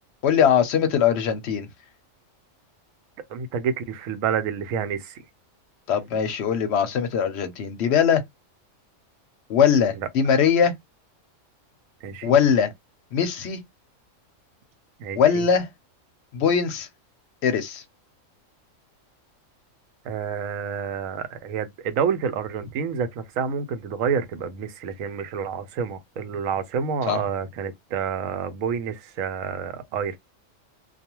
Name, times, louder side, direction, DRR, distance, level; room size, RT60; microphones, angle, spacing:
voice 1, 0.2-1.7 5.9-8.2 9.5-10.7 12.2-12.7 13.1-13.6 15.2-15.7 16.3-16.9 17.4-17.8 27.1-27.2, left 7 dB, 65° left, 0.8 m, -21 dB
voice 2, 3.3-5.0 12.0-12.3 15.0-15.2 20.1-30.2, right 7 dB, 85° right, 1.0 m, -28 dB
2.4 x 2.3 x 2.9 m
omnidirectional pair, 1.3 m